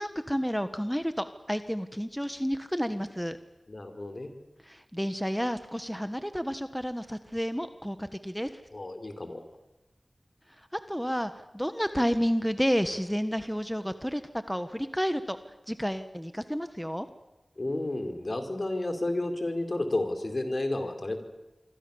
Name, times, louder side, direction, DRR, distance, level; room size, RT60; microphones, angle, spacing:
voice 1, 0.0-3.4 4.6-8.6 10.9-14.2 14.5-15.4 15.7-17.1, equal, ahead, 9 dB, 1.3 m, -30 dB
voice 2, 3.7-4.3 8.7-9.5 17.6-21.2, left 2 dB, 55° left, 6 dB, 4.3 m, -31 dB
26.0 x 24.5 x 7.2 m, 1.0 s
wide cardioid pair, 45°, 0 cm